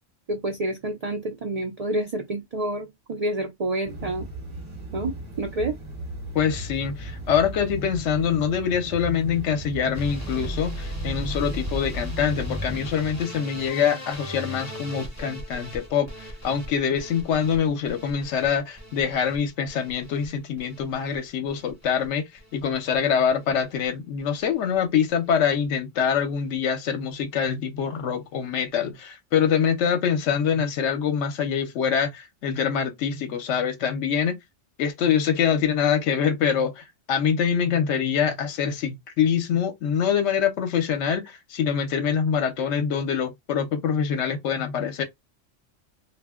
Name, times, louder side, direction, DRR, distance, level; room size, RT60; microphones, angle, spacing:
voice 1, 0.3-4.3 4.9-5.8, right 1 dB, 65° right, 0.4 m, -28 dB
sound 1, 3.9-12.9, right 1 dB, 30° right, 0.7 m, -36 dB
voice 2, 6.3-34.4 34.8-45.0, left 7 dB, 70° left, 0.9 m, -25 dB
sound 2, 9.9-22.1 22.4-23.0 23.3-23.9 24.2-24.4 24.7-24.8 25.1-25.2, equal, 20° left, 0.6 m, -38 dB
2.3 x 2.1 x 3.4 m
omnidirectional pair, 1.3 m